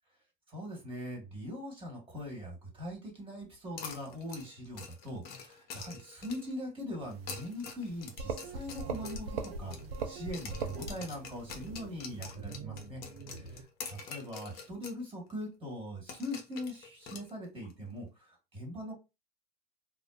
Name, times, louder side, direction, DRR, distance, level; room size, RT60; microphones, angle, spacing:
voice 1, 0.5-9.8 10.0-13.0 13.9-19.0, left 1 dB, 20° right, -1 dB, 1.5 m, -41 dB
sound 1, 3.8-6.6 7.1-10.1 10.3-15.0 15.3-15.4 16.1-17.7, left 5 dB, 35° left, 0.7 m, -46 dB
sound 2, 7.9-8.0 8.2-9.6 9.9-11.0, right 5 dB, 80° right, 0.6 m, -37 dB
sound 3, 8.4-13.6, right 4 dB, 35° right, 0.8 m, -48 dB
2.5 x 2.1 x 2.4 m, 0.27 s
hypercardioid pair, 105°, 29 cm